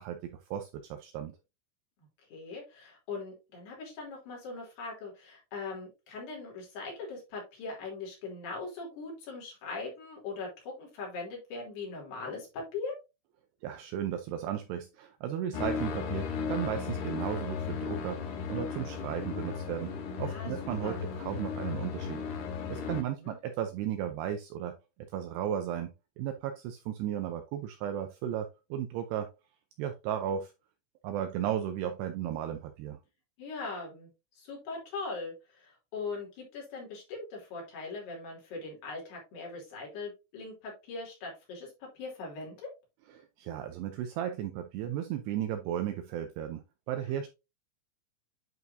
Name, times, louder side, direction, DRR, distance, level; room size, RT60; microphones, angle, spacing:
voice 1, 0.0-1.3 13.6-22.2 22.7-24.8 25.1-25.9 26.2-29.3 29.8-30.5 31.0-33.0 43.1-47.3, right 10 dB, 80° right, 7 dB, 2.5 m, -35 dB
voice 2, 2.3-12.9 20.3-21.0 22.9-23.4 33.4-34.1 34.4-42.7, left 3 dB, 60° left, -2 dB, 4.9 m, -40 dB
sound 1, 15.5-23.0, left 6 dB, 75° left, 1.8 m, -35 dB
10.5 x 4.7 x 2.6 m, 0.26 s
omnidirectional pair, 5.4 m